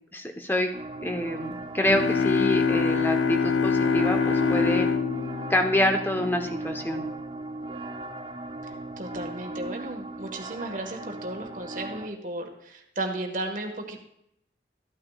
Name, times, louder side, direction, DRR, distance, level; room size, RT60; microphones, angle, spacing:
voice 1, 0.1-0.7 1.0-4.9 5.5-7.0, left 1 dB, 10° left, 4 dB, 0.9 m, -27 dB
sound 1, 0.7-12.1, right 2 dB, 30° right, 0.5 m, -37 dB
sound 2, 1.9-6.5, left 5 dB, 80° left, 0.5 m, -25 dB
voice 2, 9.0-14.0, right 2 dB, 45° right, 3 dB, 1.4 m, -34 dB
13.5 x 9.4 x 2.4 m, 0.76 s
head